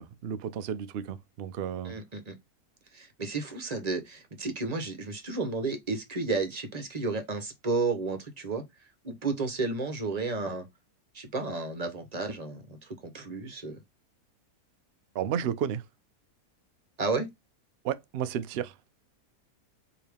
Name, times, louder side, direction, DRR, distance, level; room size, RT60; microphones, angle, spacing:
voice 1, 0.0-1.9 15.1-15.8 17.8-18.7, right 9 dB, 70° right, 0.6 m, -32 dB
voice 2, 1.8-2.4 2.9-8.6 9.0-10.7 11.1-13.8 17.0-17.3, right 3 dB, 30° right, 0.9 m, -32 dB
4.7 x 2.9 x 3.4 m
omnidirectional pair, 1.6 m